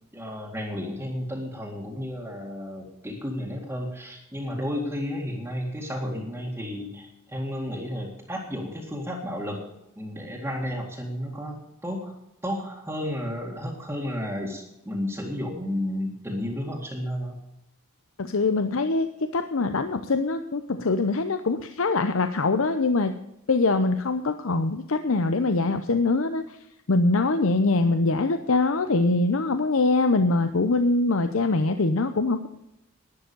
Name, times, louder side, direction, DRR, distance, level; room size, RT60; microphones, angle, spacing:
voice 1, 0.1-9.6 9.9-12.2 12.4-17.4, left 1 dB, 10° right, -3 dB, 2.0 m, -32 dB
voice 2, 18.2-19.1 19.3-23.2 23.5-26.6 26.9-32.5, left 3 dB, 65° left, 9 dB, 0.7 m, -23 dB
11.5 x 10.5 x 6.8 m, 0.85 s
head